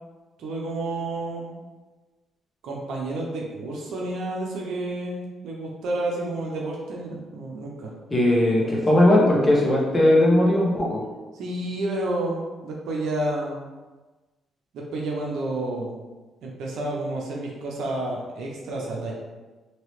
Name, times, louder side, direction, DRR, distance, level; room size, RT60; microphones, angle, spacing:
voice 1, 0.4-1.5 2.6-7.9 8.3-8.8 11.3-13.6 14.7-16.0 16.4-19.1, right 2 dB, 80° right, -2 dB, 0.6 m, -30 dB
voice 2, 8.1-11.0, left 1 dB, 20° left, -4 dB, 0.9 m, -18 dB
3.0 x 2.8 x 3.1 m, 1.2 s
cardioid pair, 100°, 0 cm